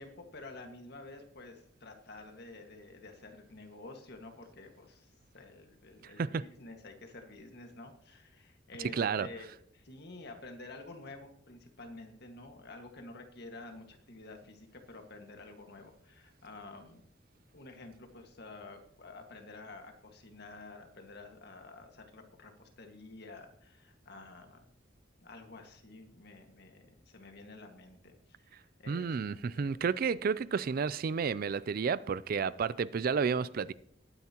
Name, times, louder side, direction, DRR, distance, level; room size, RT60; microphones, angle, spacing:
voice 1, 0.0-17.0 17.5-24.7 25.2-29.1 29.5-29.7, left 2 dB, 60° left, 1.7 m, -50 dB
voice 2, 8.9-9.3 28.9-33.7, right 6 dB, 50° right, 0.4 m, -31 dB
19.0 x 9.6 x 2.9 m
head